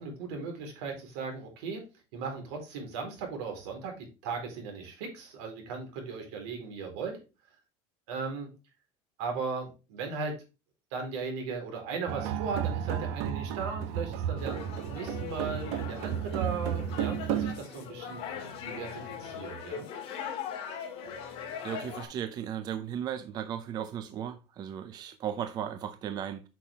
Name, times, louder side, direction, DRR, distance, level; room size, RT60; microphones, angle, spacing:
voice 1, 0.0-1.8 2.1-7.1 8.1-8.5 9.2-10.4 10.9-19.9, right 4 dB, 75° right, 4.1 m, -37 dB
sound 1, 12.1-17.5, right 9 dB, 55° right, 0.9 m, -32 dB
sound 2, 14.4-22.0, left 7 dB, 45° left, 2.6 m, -40 dB
voice 2, 21.6-26.5, right 9 dB, 30° right, 0.6 m, -36 dB
8.4 x 6.1 x 3.5 m
cardioid pair, 165°, 14 cm